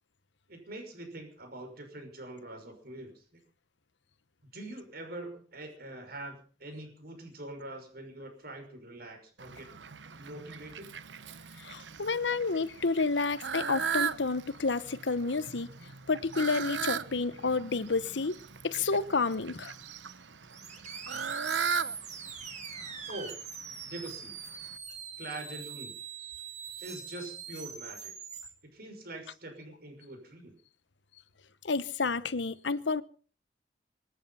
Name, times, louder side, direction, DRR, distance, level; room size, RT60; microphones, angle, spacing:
voice 1, 0.5-3.4 4.5-9.7 10.1-10.9 23.1-23.3 23.8-24.4 25.2-25.9 26.8-28.1 28.7-30.5, right 1 dB, 60° right, 6.0 m, -44 dB
Fowl, 9.4-24.8, right 6 dB, 85° right, 1.0 m, -38 dB
voice 2, 11.6-15.7 16.1-18.4 18.6-19.7 31.6-33.0, left 4 dB, 85° left, 1.0 m, -30 dB
sound 1, 20.5-28.5, right 6 dB, 40° right, 3.1 m, -43 dB
25.0 x 10.0 x 5.7 m
head